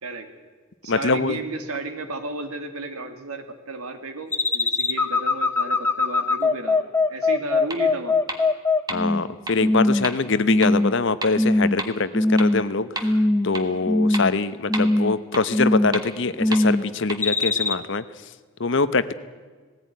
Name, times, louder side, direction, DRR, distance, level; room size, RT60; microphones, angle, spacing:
voice 1, 0.0-0.3 0.8-8.2, right 2 dB, 85° right, 7 dB, 2.3 m, -33 dB
voice 2, 0.9-1.4 8.9-13.1 13.4-18.0 18.6-19.1, left 3 dB, 55° left, 14 dB, 0.8 m, -23 dB
sound 1, 4.3-9.3 9.6-10.1 10.5-11.0 11.4-11.8 12.1-12.7 13.0-13.5 13.9-14.4 14.7-15.2 15.5-16.0 16.4-16.9 17.2-17.7, left 2 dB, 10° left, 0.7 m, -21 dB
sound 2, 7.7-7.8 8.3-8.4 8.9-9.0 9.5-9.6 10.0-10.1 10.6-10.7 11.2-11.3 11.8-11.9 12.4-12.5 13.0-13.1 13.5-13.6 14.1-14.2 14.7-14.8 15.3-15.4 15.9-16.0 16.5-16.6 17.1-17.2, right 2 dB, 15° right, 1.4 m, -30 dB
19.0 x 15.5 x 9.3 m, 1.4 s
head